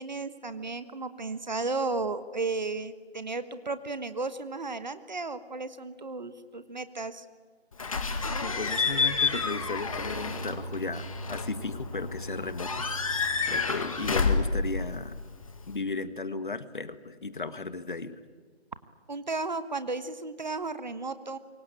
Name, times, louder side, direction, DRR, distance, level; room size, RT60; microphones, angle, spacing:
voice 1, 0.0-7.2 19.1-21.4, right 3 dB, 40° right, 12 dB, 1.4 m, -34 dB
Slam / Squeak / Alarm, 7.8-15.8, left 4 dB, 30° left, 1.8 m, -30 dB
voice 2, 8.4-12.9 13.5-15.2 15.7-18.2, left 3 dB, 45° left, 12 dB, 1.6 m, -35 dB
27.0 x 23.5 x 9.0 m, 1.5 s
figure-of-eight pair, 165°, 34 cm